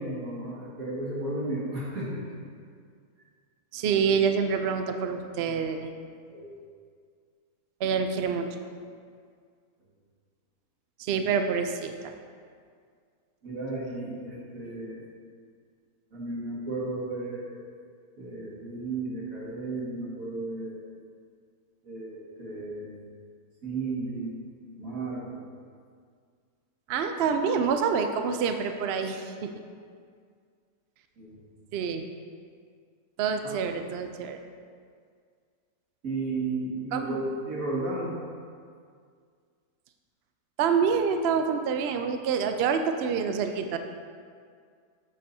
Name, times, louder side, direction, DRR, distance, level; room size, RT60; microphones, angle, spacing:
voice 1, 0.0-2.3 6.3-6.5 13.4-15.1 16.1-17.6 18.2-20.8 21.8-22.9 23.6-24.4 24.8-25.4 31.2-31.4 33.4-33.6 36.0-38.2, right 2 dB, 60° right, -6 dB, 2.3 m, -34 dB
voice 2, 3.7-5.9 7.8-8.5 11.0-12.1 26.9-29.5 31.7-32.0 33.2-34.4 36.9-37.2 40.6-43.8, right 6 dB, 80° right, 6 dB, 0.5 m, -27 dB
9.7 x 7.6 x 2.7 m, 2.1 s
omnidirectional pair, 1.7 m